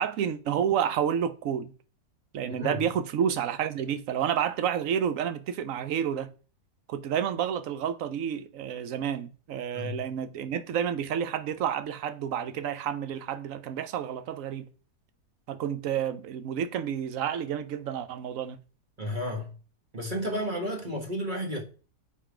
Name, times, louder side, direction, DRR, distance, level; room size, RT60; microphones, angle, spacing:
voice 1, 0.0-1.7 2.3-6.3 6.9-14.7 15.5-18.6, right 8 dB, 60° right, 1.0 m, -30 dB
voice 2, 2.5-2.8 9.7-10.0 19.0-19.5 19.9-21.6, equal, 30° right, 1.3 m, -32 dB
7.3 x 4.9 x 5.0 m
omnidirectional pair, 1.8 m